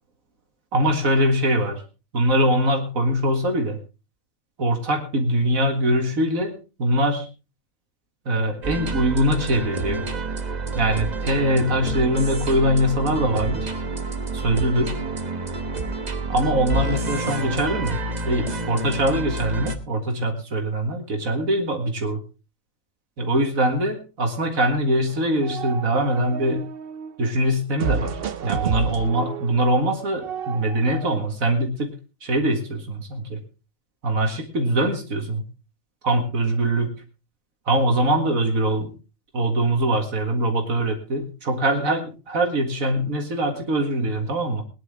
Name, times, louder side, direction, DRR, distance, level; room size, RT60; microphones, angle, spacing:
voice 1, 0.7-1.8 2.1-3.8 4.6-7.3 8.3-10.0 10.8-13.7 14.3-14.9 16.3-18.0 18.3-22.2 23.2-26.6 27.2-31.9 32.2-33.4 34.0-35.4 36.0-36.9 37.7-38.9 39.3-44.6, right 1 dB, 80° right, 4 dB, 2.3 m, -22 dB
sound 1, 8.6-19.7, right 2 dB, 35° right, 1.2 m, -29 dB
sound 2, 25.1-27.2 27.8-31.2, right 6 dB, 50° right, 0.9 m, -30 dB
20.5 x 10.5 x 3.6 m, 0.31 s
omnidirectional pair, 1.4 m